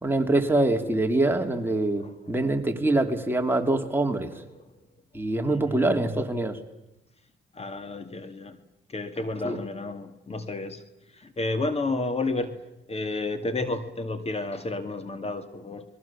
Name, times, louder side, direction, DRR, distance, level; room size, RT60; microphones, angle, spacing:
voice 1, 0.0-4.3 5.1-6.6 9.4-9.6, right 2 dB, 10° right, 4 dB, 2.9 m, -24 dB
voice 2, 5.5-6.0 7.6-8.6 8.9-10.8 11.4-12.5 12.9-15.8, left 2 dB, 30° left, 9 dB, 2.2 m, -31 dB
29.5 x 22.0 x 7.3 m, 0.96 s
cardioid pair, 90°, 20 cm